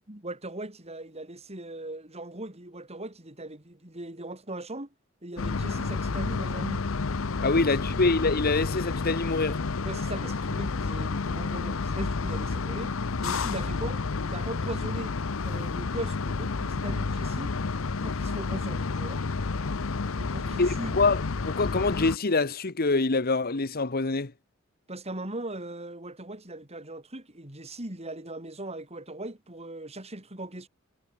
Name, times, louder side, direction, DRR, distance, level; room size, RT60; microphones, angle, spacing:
voice 1, 0.0-4.9 5.2-6.9 7.5-8.0 9.8-12.9 13.2-17.5 18.0-19.2 20.2-21.0 24.9-30.7, right 1 dB, 30° right, 4.6 m, -39 dB
sound 1, 5.4-22.2, left 4 dB, 75° left, 0.8 m, -30 dB
voice 2, 7.4-9.6 20.6-24.3, left 3 dB, 50° left, 1.2 m, -25 dB
head